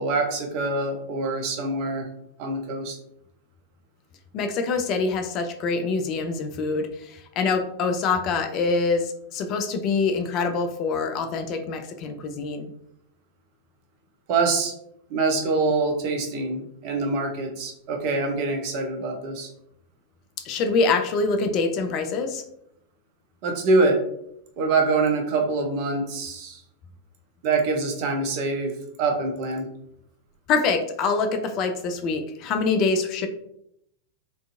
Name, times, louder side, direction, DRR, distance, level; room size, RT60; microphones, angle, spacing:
voice 1, 0.0-2.1 2.4-3.0 14.3-14.7 15.1-19.5 23.4-24.0 24.6-26.6 27.4-29.7, right 3 dB, 45° right, 3 dB, 0.5 m, -25 dB
voice 2, 4.3-12.7 20.5-22.4 30.5-33.3, left 4 dB, 35° left, 6 dB, 0.3 m, -25 dB
2.4 x 2.3 x 2.5 m, 0.74 s
figure-of-eight pair, 90°, 0 cm